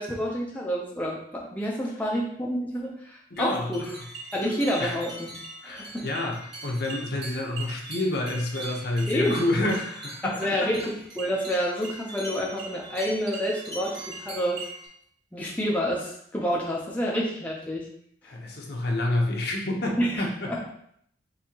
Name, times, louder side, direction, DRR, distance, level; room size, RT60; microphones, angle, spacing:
voice 1, 0.0-3.8 4.3-5.3 5.6-6.1 9.1-9.4 10.2-10.9 11.2-14.6 15.3-17.9 20.0-20.6, equal, 10° left, -3 dB, 0.6 m, -28 dB
voice 2, 3.3-4.0 4.8-5.0 5.6-10.7 18.2-20.5, left 1 dB, 60° left, -1 dB, 0.9 m, -29 dB
sound 1, 3.3-14.9, right 2 dB, 60° right, 1.5 m, -41 dB
5.4 x 2.7 x 2.9 m, 0.68 s
head